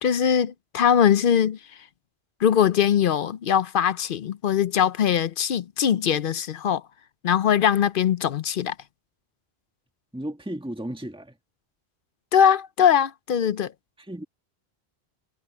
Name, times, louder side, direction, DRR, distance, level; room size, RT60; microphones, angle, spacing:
voice 1, 0.0-1.6 2.4-6.8 7.2-8.7 12.3-13.7, left 8 dB, 65° left, 0.7 m, -21 dB
voice 2, 10.1-11.4 14.1-14.2, right 1 dB, 5° right, 1.8 m, -34 dB
omnidirectional pair, 1.0 m